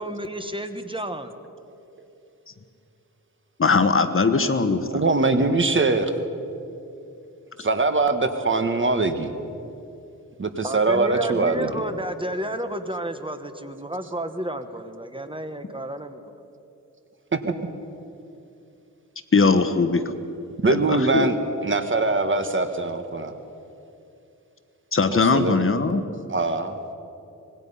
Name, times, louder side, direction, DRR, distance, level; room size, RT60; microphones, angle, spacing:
voice 1, 0.0-1.4 10.6-16.2, right 1 dB, 15° right, 8 dB, 1.1 m, -31 dB
voice 2, 3.6-4.8 7.6-7.7 19.3-20.0 20.7-21.3 24.9-26.0, left 4 dB, 40° left, 9 dB, 1.2 m, -20 dB
voice 3, 4.9-6.1 7.6-9.3 10.4-11.8 17.3-17.5 20.6-21.4 21.6-23.4 25.1-25.6 26.3-26.8, right 3 dB, 35° right, 8 dB, 1.4 m, -22 dB
25.0 x 20.0 x 5.6 m, 2.7 s
wide cardioid pair, 105°, 32 cm